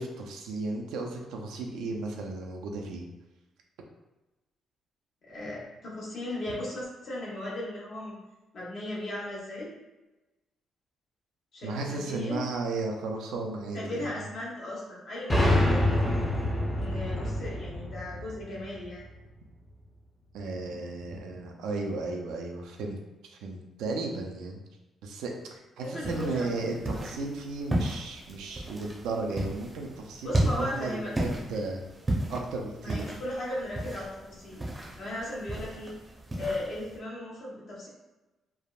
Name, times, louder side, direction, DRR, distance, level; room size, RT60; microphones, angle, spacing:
voice 1, 0.0-3.0 11.6-14.2 20.3-23.0 23.3-24.6 25.0-31.8 32.3-33.0, right 3 dB, 85° right, 1 dB, 0.4 m, -34 dB
voice 2, 5.2-8.2 8.5-9.7 11.5-12.5 13.7-16.0 16.7-19.0 25.8-26.6 26.9-27.0 30.2-31.7 32.8-35.9 36.3-37.9, left 1 dB, 60° left, -5 dB, 1.0 m, -37 dB
sound 1, 15.3-19.0, left 1 dB, 15° left, 0.6 m, -26 dB
sound 2, 26.0-37.0, right 1 dB, 25° right, 0.6 m, -34 dB
3.3 x 2.0 x 2.3 m, 1.1 s
cardioid pair, 90°, 0 cm